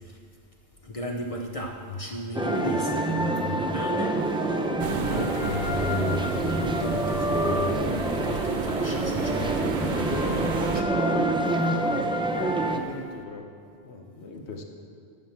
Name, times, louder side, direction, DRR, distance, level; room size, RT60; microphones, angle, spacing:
voice 1, 0.8-4.1 4.9-10.9, left 1 dB, 35° left, 2 dB, 0.9 m, -34 dB
sound 1, 2.3-12.8, right 1 dB, 5° right, 0.5 m, -26 dB
sound 2, 4.8-10.8, right 5 dB, 50° right, 0.7 m, -33 dB
voice 2, 12.7-13.5 13.8-14.6, left 3 dB, 75° left, 3 dB, 1.4 m, -41 dB
12.5 x 6.3 x 7.2 m, 2.3 s
omnidirectional pair, 1.1 m